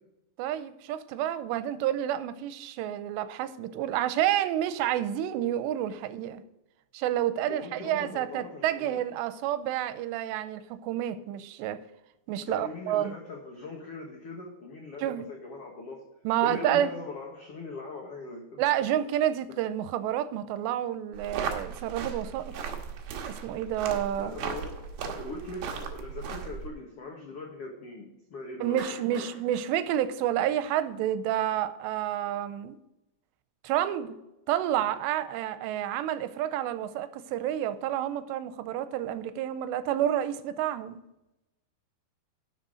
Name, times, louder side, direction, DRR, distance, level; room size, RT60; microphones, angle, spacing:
voice 1, 0.4-6.4 6.9-11.8 12.3-13.2 15.0-15.3 16.2-16.9 18.6-22.5 23.2-24.4 28.6-32.8 33.6-34.2 34.5-41.0, right 11 dB, 85° right, 13 dB, 2.8 m, -29 dB
voice 2, 7.5-9.0 12.4-16.0 16.4-18.6 24.1-24.8 25.2-29.3, left 3 dB, 80° left, 0 dB, 1.3 m, -40 dB
sound 1, 21.1-26.7, right 6 dB, 70° right, 2.5 m, -37 dB
Clapping, 28.8-31.1, right 4 dB, 55° right, 3.4 m, -47 dB
11.5 x 6.1 x 5.0 m, 0.95 s
omnidirectional pair, 4.9 m